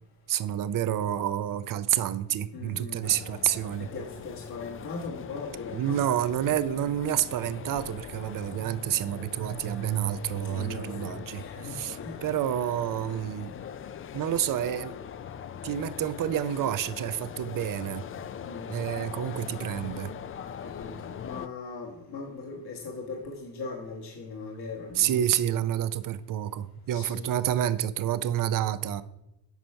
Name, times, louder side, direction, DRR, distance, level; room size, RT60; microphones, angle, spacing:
voice 1, 0.3-3.9 5.7-13.5 14.1-14.9 15.6-18.0 18.7-20.1 25.0-29.0, right 11 dB, 50° right, 14 dB, 0.6 m, -29 dB
voice 2, 2.5-3.1 3.8-6.0 10.4-12.2 18.4-18.8 20.6-25.4 26.9-27.6, left 4 dB, 60° left, -1 dB, 1.5 m, -39 dB
sound 1, 3.0-21.5, left 8 dB, 30° left, 0.4 m, -41 dB
8.0 x 4.4 x 5.6 m, 0.90 s
cardioid pair, 80°, 43 cm